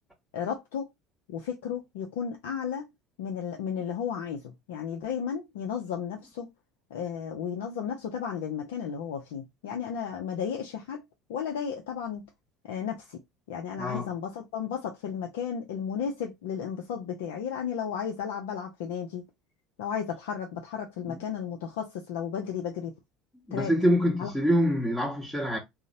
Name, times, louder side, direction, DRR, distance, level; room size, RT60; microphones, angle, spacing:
voice 1, 0.3-0.9 1.3-2.9 3.2-6.5 6.9-11.0 11.3-12.3 12.6-13.2 13.5-19.3 19.8-22.9 23.5-23.7 24.2-24.3, left 7 dB, 75° left, 0.4 m, -34 dB
voice 2, 13.8-14.1 21.1-21.2 23.4-25.6, equal, ahead, 0.8 m, -26 dB
2.8 x 2.0 x 2.5 m
hypercardioid pair, 75°, 0 cm